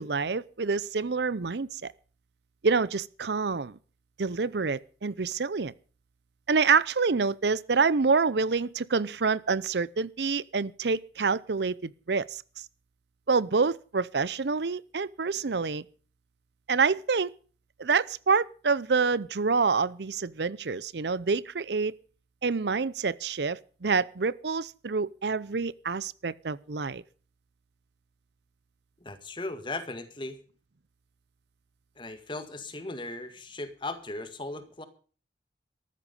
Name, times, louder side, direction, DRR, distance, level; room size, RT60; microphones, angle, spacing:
voice 1, 0.0-1.9 2.6-3.8 4.2-5.7 6.5-12.4 13.3-15.8 16.7-17.3 17.8-22.0 22.4-27.0, right 4 dB, 75° right, 0.7 m, -27 dB
voice 2, 29.0-30.4 32.0-34.9, left 2 dB, 25° left, 1.9 m, -37 dB
14.0 x 13.5 x 5.4 m
head